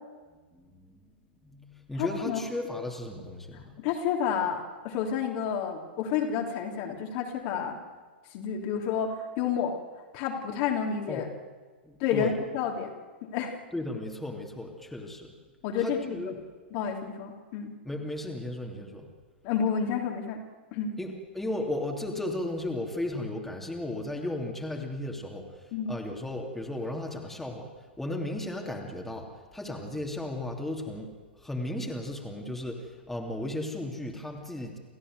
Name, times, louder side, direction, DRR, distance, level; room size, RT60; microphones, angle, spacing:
voice 1, 0.5-1.0 1.4-3.7 11.1-11.2 11.8-12.4 13.7-15.3 15.8-16.4 17.8-19.1 21.0-27.7 28.0-31.1 31.4-34.8, left 1 dB, 5° left, 0 dB, 3.0 m, -35 dB
voice 2, 2.0-2.4 3.5-7.8 8.3-9.7 10.1-11.3 12.0-12.9 13.2-13.6 15.6-16.3 16.7-17.7 19.4-20.4 20.7-20.9 25.7-26.0, left 7 dB, 40° left, 1 dB, 3.2 m, -30 dB
29.5 x 14.5 x 8.0 m, 1.4 s
figure-of-eight pair, 105°, 6 cm